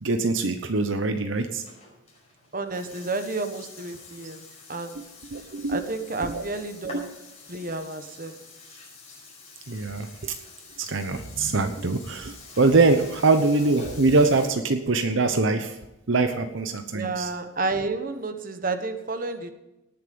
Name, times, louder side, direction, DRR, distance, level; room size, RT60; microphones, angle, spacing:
voice 1, 0.0-1.6 5.0-5.1 5.3-5.8 6.3-6.4 6.9-7.1 9.7-10.3 10.8-15.8 16.1-17.3, right 3 dB, 65° right, 7 dB, 0.9 m, -23 dB
Burping eructation, 1.3-14.5, left 3 dB, 30° left, 5.1 m, -46 dB
voice 2, 2.5-4.4 4.7-5.0 5.7-7.1 7.5-8.3 16.9-19.5, right 3 dB, 40° right, 8 dB, 1.2 m, -30 dB
18.5 x 7.4 x 5.3 m, 0.94 s
head